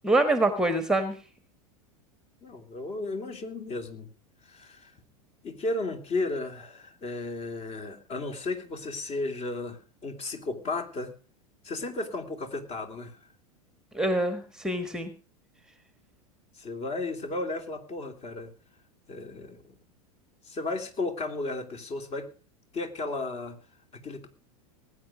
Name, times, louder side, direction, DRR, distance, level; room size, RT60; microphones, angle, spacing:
voice 1, 0.0-1.2 13.9-15.1, right 2 dB, 5° right, 9 dB, 1.4 m, -25 dB
voice 2, 2.4-4.1 4.4-4.9 5.4-11.1 11.6-13.2 16.5-18.5 19.1-19.6 20.4-22.3 22.7-23.6 23.9-24.3, left 2 dB, 30° left, 6 dB, 3.0 m, -34 dB
19.5 x 9.2 x 5.0 m, 0.37 s
figure-of-eight pair, 90°, 19 cm